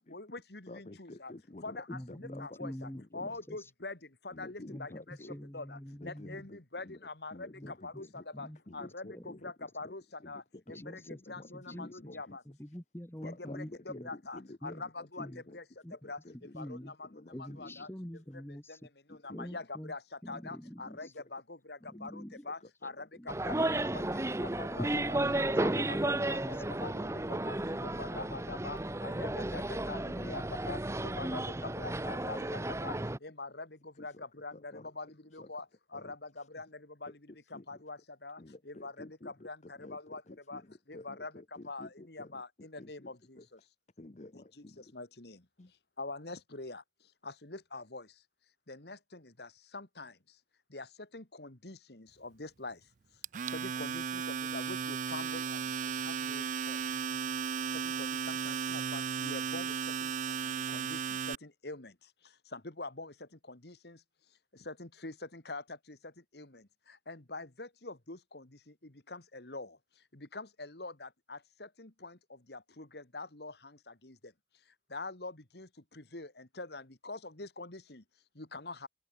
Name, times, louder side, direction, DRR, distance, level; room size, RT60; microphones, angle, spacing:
voice 1, 0.1-1.3 1.6-4.0 4.2-5.2 5.5-8.1 8.4-8.5 8.7-10.4 10.8-11.0 11.3-12.4 13.2-15.6 16.1-16.2 16.6-17.1 17.4-17.9 19.2-20.0 20.3-23.6 23.9-24.0 24.6-25.2 25.5-26.0 26.2-26.9 27.4-27.6 27.8-30.8 31.2-31.4 31.7-32.9 33.2-33.7 34.0-35.6 35.9-36.7 37.0-37.1 37.7-38.4 38.7-40.2 40.5-40.6 40.9-41.3 41.7-43.4 44.9-45.4 46.0-46.8 47.2-48.1 48.7-50.1 50.7-50.9 51.1-52.8 53.5-55.6 56.0-56.8 58.0-59.7 60.0-60.1 60.4-61.0 61.4-61.9 62.5-63.1 63.5-64.0 64.7-65.6 65.9-66.0 66.3-66.5 67.1-68.5 69.1-69.7 70.3-72.2 72.5-73.5 74.0-74.1 74.9-75.7 76.0-78.0 78.4-78.9, left 3 dB, 65° left, 2.3 m, -44 dB
voice 2, 0.7-2.6 2.9-3.4 4.3-5.4 6.0-7.0 7.3-9.4 9.8-9.9 10.2-12.4 13.2-14.9 15.2-15.6 16.0-16.5 16.8-17.8 19.1-19.6 21.0-21.2 22.8-23.1 24.3-24.6 27.0-28.3 30.1-30.3 30.7-30.8 32.4-32.5 32.8-32.9 34.0-34.1 34.5-34.9 35.4-35.5 35.9-36.1 37.1-37.2 37.5-37.8 38.4-42.3 42.8-43.1 43.4-43.5 44.0-44.9 45.6-45.7, left 2 dB, 40° left, 0.8 m, -51 dB
voice 3, 1.9-3.7 4.7-4.9 5.2-6.5 7.5-7.7 8.3-8.6 9.1-9.3 10.7-12.2 12.4-14.1 14.6-14.8 15.2-15.4 15.8-16.0 16.3-16.9 17.3-18.9 19.3-19.9 20.2-21.1 21.8-22.5 23.2-23.3 24.8-26.6, equal, 15° left, 1.4 m, -45 dB
sound 1, 23.3-33.2, right 1 dB, 15° right, 0.8 m, -33 dB
Domestic sounds home sounds, 53.2-61.4, right 6 dB, 45° right, 0.4 m, -35 dB
open air
head